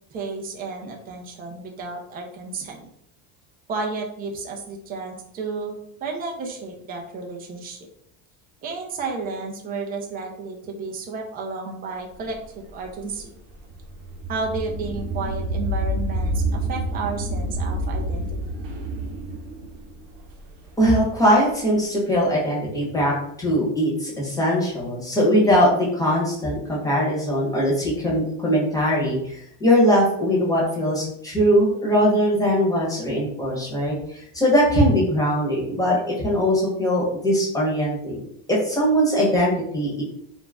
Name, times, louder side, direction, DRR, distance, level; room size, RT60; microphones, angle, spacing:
voice 1, 0.1-2.9 3.7-7.8 8.6-13.3 14.3-18.3, right 4 dB, 25° right, 1 dB, 0.3 m, -32 dB
sound 1, 12.3-21.3, right 1 dB, 80° right, 0.8 m, -28 dB
voice 2, 20.8-38.2 38.5-40.0, equal, 10° left, -5 dB, 0.8 m, -21 dB
2.5 x 2.1 x 3.3 m, 0.71 s
cardioid pair, 140°, 43 cm